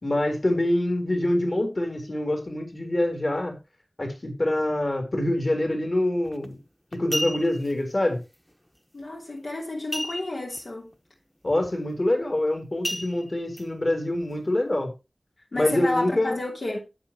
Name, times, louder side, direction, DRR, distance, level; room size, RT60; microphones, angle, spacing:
voice 1, 0.0-3.6 4.0-6.6 6.9-8.2 11.4-14.9 15.5-16.4, left 1 dB, 50° left, 3.5 m, -25 dB
sound 1, 6.3-6.5 6.9-7.7 9.9-10.6 10.9-11.0 11.5-11.8 12.8-13.6 14.2-14.3, equal, 5° left, 1.1 m, -32 dB
voice 2, 8.9-10.9 15.5-16.8, left 2 dB, 75° left, 2.8 m, -31 dB
11.5 x 8.8 x 2.9 m
wide cardioid pair, 60°, 0 cm